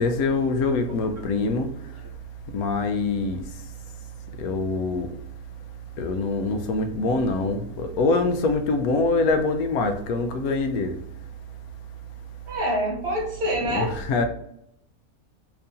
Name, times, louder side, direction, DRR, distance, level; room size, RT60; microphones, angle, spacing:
voice 1, 0.0-1.7 2.5-3.4 4.4-5.1 6.0-10.9 13.7-14.2, left 3 dB, 90° left, 1.1 m, -24 dB
voice 2, 12.5-14.0, equal, 50° right, 1.2 m, -26 dB
4.6 x 2.7 x 2.5 m
omnidirectional pair, 1.5 m